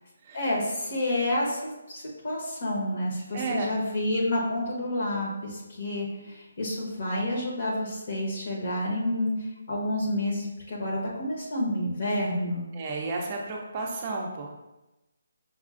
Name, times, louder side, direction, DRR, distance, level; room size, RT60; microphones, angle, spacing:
voice 1, 0.3-9.3 9.7-12.7, left 1 dB, 50° left, -3 dB, 1.0 m, -29 dB
voice 2, 3.3-3.7 12.7-14.5, right 3 dB, 30° right, -1 dB, 0.5 m, -32 dB
5.3 x 2.4 x 2.4 m, 1.0 s
hypercardioid pair, 165°, 0 cm